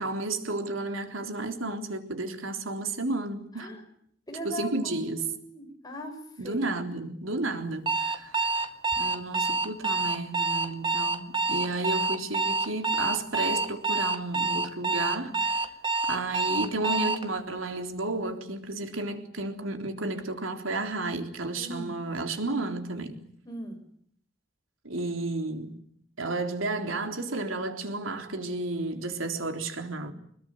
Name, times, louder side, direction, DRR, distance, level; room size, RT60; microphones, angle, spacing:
voice 1, 0.0-3.7 4.4-5.3 6.4-8.6 9.0-15.7 16.1-23.2 24.8-25.8 26.2-30.1, right 2 dB, 90° right, 3.7 m, -32 dB
voice 2, 4.3-6.1 6.4-6.7 21.6-21.9 23.4-23.8, equal, 20° left, 6.4 m, -39 dB
Alarm, 7.9-17.3, right 3 dB, 25° right, 1.9 m, -27 dB
26.5 x 21.5 x 9.5 m
head